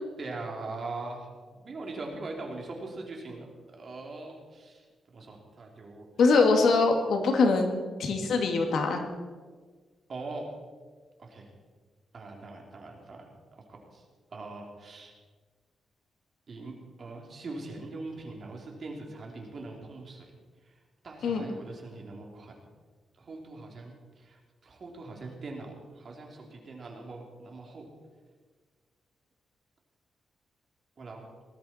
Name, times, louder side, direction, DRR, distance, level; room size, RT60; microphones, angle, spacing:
voice 1, 0.2-1.3 1.5-3.5 3.8-6.1 10.1-10.5 11.2-11.5 12.1-13.3 13.6-14.0 14.3-15.1 16.5-20.3 21.0-22.6 23.2-24.4 24.6-27.8 31.0-31.2, right 3 dB, 45° right, 0 dB, 3.0 m, -41 dB
voice 2, 6.2-9.1 21.2-21.4, left 3 dB, 80° left, 3 dB, 2.2 m, -23 dB
19.0 x 13.0 x 4.3 m, 1.5 s
wide cardioid pair, 135°, 0 cm